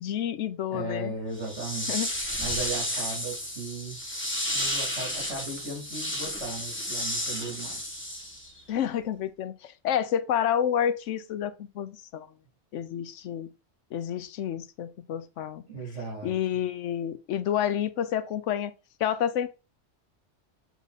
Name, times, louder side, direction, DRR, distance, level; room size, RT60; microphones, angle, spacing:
voice 1, 0.0-1.1 1.9-2.1 8.7-12.3 12.7-13.5 13.9-15.6 16.2-18.7 19.0-19.5, left 9 dB, 85° left, 1.0 m, -29 dB
voice 2, 0.7-1.9 2.4-4.0 4.5-7.8 15.7-16.3, right 2 dB, 70° right, 3.6 m, -36 dB
sound 1, 1.4-8.6, left 1 dB, 10° left, 1.4 m, -32 dB
7.1 x 3.6 x 4.1 m
omnidirectional pair, 1.2 m